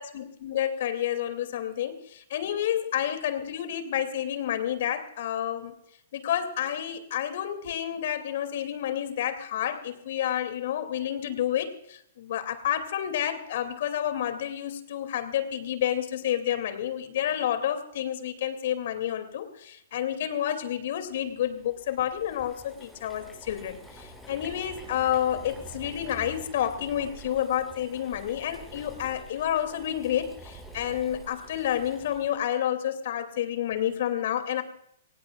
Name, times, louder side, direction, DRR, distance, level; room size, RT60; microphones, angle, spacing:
voice 1, 0.0-5.7 6.1-34.6, left 10 dB, 60° left, 8 dB, 2.6 m, -30 dB
Boiling, 21.2-32.5, right 1 dB, ahead, 6.5 m, -47 dB
23.5 x 19.5 x 2.4 m, 0.72 s
hypercardioid pair, 115°, 0 cm